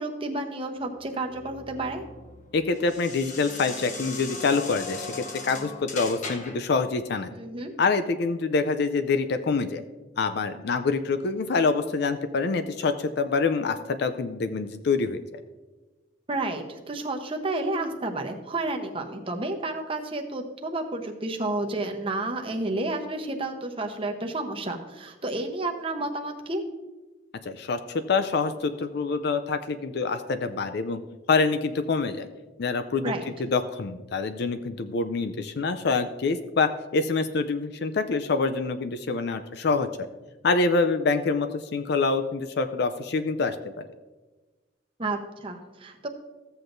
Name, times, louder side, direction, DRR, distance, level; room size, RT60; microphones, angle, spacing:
voice 1, 0.0-2.1 7.4-7.7 16.3-26.6 33.0-33.3 45.0-46.1, right 2 dB, 30° right, 3 dB, 0.9 m, -31 dB
sound 1, 0.8-6.7, left 3 dB, 40° left, 1.0 m, -39 dB
voice 2, 2.5-7.3 7.8-9.8 10.2-15.4 27.5-27.8 28.1-31.0 31.3-32.3 32.6-33.1 33.4-40.1 40.4-43.8, left 4 dB, 55° left, 10 dB, 0.4 m, -26 dB
14.5 x 7.9 x 2.6 m, 1.2 s
head